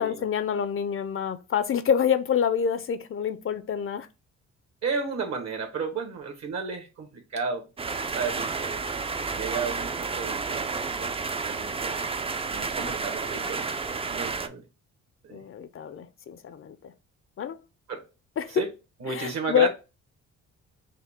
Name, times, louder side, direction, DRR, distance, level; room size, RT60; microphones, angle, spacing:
voice 1, 0.0-4.1 15.3-16.9 17.4-17.6 18.4-18.7 19.1-19.7, left 8 dB, 45° left, 0.5 m, -27 dB
voice 2, 4.8-7.6 8.1-8.9 9.2-12.1 12.5-14.6 15.2-15.4 17.9-18.0 18.5-18.7 19.0-19.7, right 5 dB, 60° right, 1.4 m, -33 dB
sound 1, 7.8-14.5, right 4 dB, 20° right, 0.4 m, -31 dB
5.5 x 2.1 x 3.5 m
cardioid pair, 75°, 31 cm